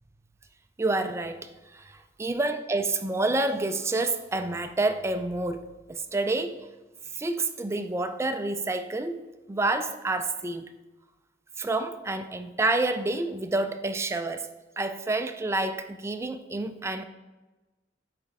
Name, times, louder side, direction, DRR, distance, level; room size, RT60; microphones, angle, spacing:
voice 1, 0.8-6.6 7.1-9.2 9.5-10.7 11.6-14.5 14.8-17.0, right 2 dB, 15° right, 0.3 m, -28 dB
8.5 x 3.3 x 3.4 m
head